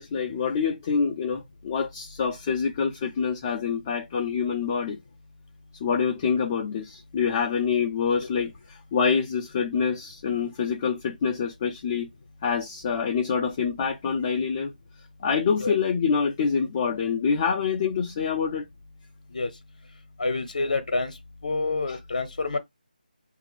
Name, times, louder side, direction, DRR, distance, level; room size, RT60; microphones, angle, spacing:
voice 1, 0.0-5.0 5.8-8.5 8.9-12.1 12.4-14.7 15.2-18.6 21.9-22.0, left 6 dB, 20° left, 0.3 m, -26 dB
voice 2, 20.2-21.1 21.4-22.6, left 3 dB, 50° left, 0.7 m, -27 dB
4.8 x 2.5 x 3.3 m
figure-of-eight pair, 160°, 5 cm